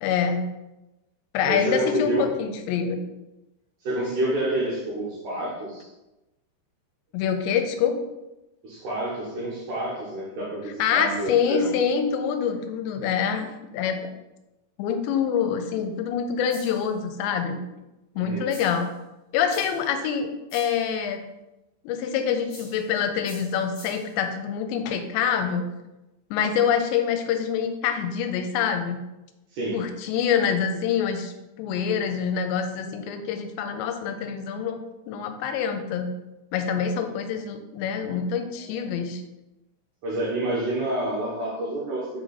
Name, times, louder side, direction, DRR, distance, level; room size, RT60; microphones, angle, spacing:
voice 1, 0.0-0.5 1.3-3.0 7.1-8.0 10.8-14.1 14.8-17.6 18.2-18.9 19.3-21.2 21.8-25.6 26.3-29.0 29.7-34.8 35.1-36.1 36.5-39.2, left 7 dB, 85° left, 6 dB, 2.9 m, -26 dB
voice 2, 1.4-2.4 3.8-5.9 8.6-11.7 18.2-18.5 29.5-29.8 40.0-42.2, right 1 dB, 65° right, -6 dB, 2.1 m, -28 dB
sound 1, 16.5-16.9 18.5-18.9 19.5-19.9 20.5-20.9 22.5-22.9 23.2-24.2, left 2 dB, 40° left, 2.2 m, -46 dB
6.0 x 4.8 x 4.0 m, 0.99 s
omnidirectional pair, 5.0 m